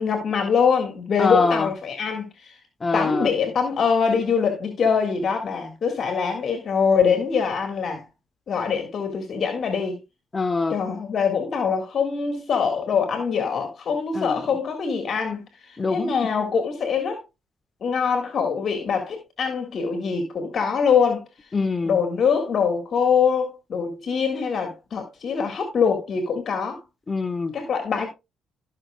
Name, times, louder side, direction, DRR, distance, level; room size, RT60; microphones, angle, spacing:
voice 1, 0.0-2.6 2.9-8.0 8.5-10.0 10.7-17.2 17.8-21.2 21.9-26.8 27.5-28.1, left 6 dB, 55° left, 1.9 m, -23 dB
voice 2, 1.2-1.7 2.8-3.3 10.3-10.8 14.1-14.4 15.8-16.1 21.5-22.0 27.1-27.6, left 4 dB, 30° left, 1.3 m, -23 dB
15.0 x 6.0 x 2.4 m
cardioid pair, 90°, 0 cm